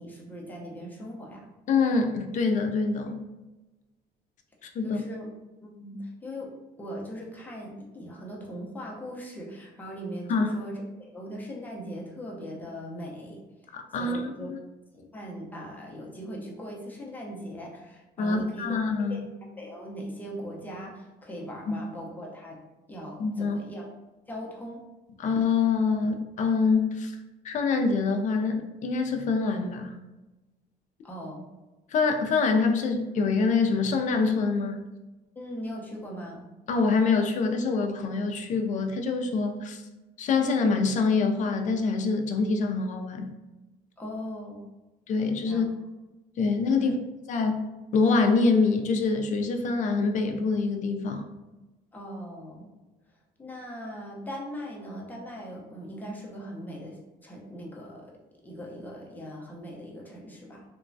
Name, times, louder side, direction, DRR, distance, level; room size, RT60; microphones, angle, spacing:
voice 1, 0.0-1.5 4.8-5.3 5.8-6.5 6.8-13.4 13.9-14.5 14.9-18.8 19.1-19.2 19.6-22.6 22.9-23.9 24.3-24.8 31.0-31.4 35.4-36.4 44.0-44.6 45.5-45.7 46.8-46.9 51.9-52.7 53.4-60.6, equal, 10° left, -3 dB, 0.6 m, -40 dB
voice 2, 1.7-3.2 4.6-5.0 10.3-10.5 13.7-14.6 18.2-19.2 21.7-21.8 23.2-23.6 25.2-27.1 27.4-29.9 31.9-34.8 36.7-39.8 40.2-43.3 45.1-45.7 46.4-47.0 47.3-47.6 47.9-51.2, left 4 dB, 45° left, 5 dB, 0.4 m, -25 dB
2.9 x 2.2 x 2.6 m, 1.1 s
cardioid pair, 110°, 17 cm